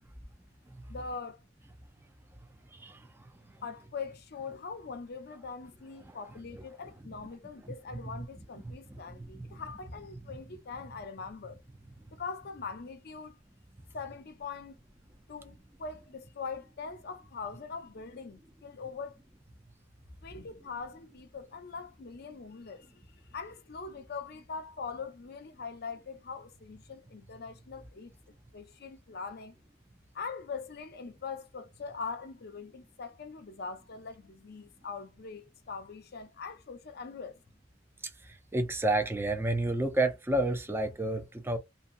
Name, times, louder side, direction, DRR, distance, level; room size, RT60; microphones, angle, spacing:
voice 1, 0.9-1.4 3.6-11.6 12.1-13.4 13.9-14.8 15.3-19.2 20.2-28.1 28.5-29.6 30.1-37.4, left 5 dB, 55° left, 0.6 m, -42 dB
voice 2, 2.7-3.3 6.5-6.6 8.9-9.6 38.2-41.6, right 2 dB, 10° right, 0.5 m, -31 dB
2.7 x 2.3 x 2.4 m
head